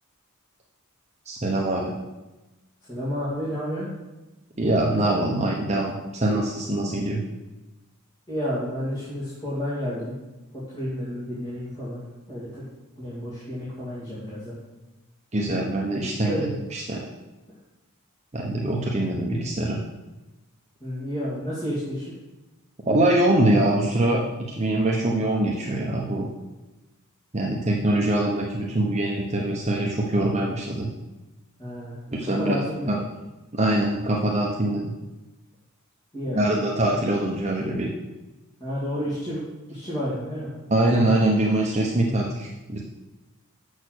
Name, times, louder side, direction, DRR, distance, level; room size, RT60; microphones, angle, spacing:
voice 1, 1.3-1.9 4.6-7.2 15.3-17.0 18.3-19.8 22.9-26.3 27.3-30.9 32.1-33.0 33.5-34.9 36.3-37.9 40.7-42.8, right 1 dB, 30° right, -2 dB, 1.0 m, -23 dB
voice 2, 2.9-3.9 8.3-10.1 10.5-12.0 12.3-12.6 13.0-14.5 16.2-16.5 20.8-22.0 31.6-31.9 32.4-33.0 36.1-36.5 38.6-39.4 39.7-40.5, equal, 20° left, -10 dB, 2.6 m, -30 dB
7.4 x 6.5 x 6.4 m, 1.1 s
head